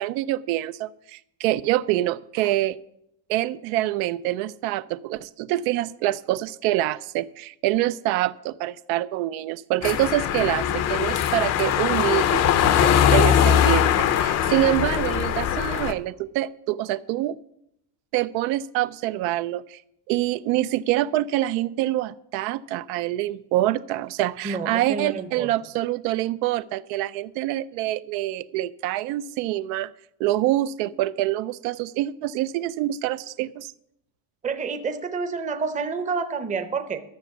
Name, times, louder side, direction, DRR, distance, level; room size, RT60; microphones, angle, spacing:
voice 1, 0.0-2.8 3.3-12.4 12.8-17.4 18.1-19.8 20.1-29.9 30.2-33.7, right 15 dB, 80° right, 15 dB, 0.6 m, -26 dB
sound 1, 9.8-15.9, left 9 dB, 35° left, 0.5 m, -21 dB
voice 2, 24.4-25.5 34.4-37.0, right 5 dB, 15° right, 8 dB, 0.7 m, -29 dB
12.5 x 6.9 x 7.0 m, 0.78 s
cardioid pair, 165°, 47 cm